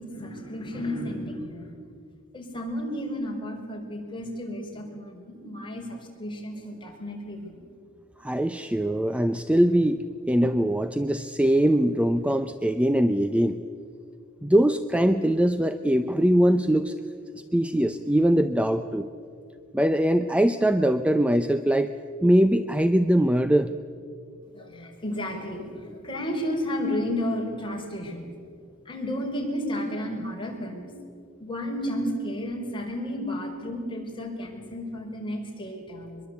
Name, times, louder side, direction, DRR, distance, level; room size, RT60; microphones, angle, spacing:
voice 1, 0.0-1.8 2.3-7.6 24.5-28.3 28.9-30.9 31.4-36.2, equal, 25° left, 0 dB, 5.3 m, -32 dB
voice 2, 8.2-10.0 10.3-13.6 14.4-16.9 17.5-19.1 19.7-21.9 22.2-23.7, right 1 dB, 5° right, 9 dB, 0.6 m, -22 dB
24.0 x 22.5 x 8.3 m, 2.2 s
head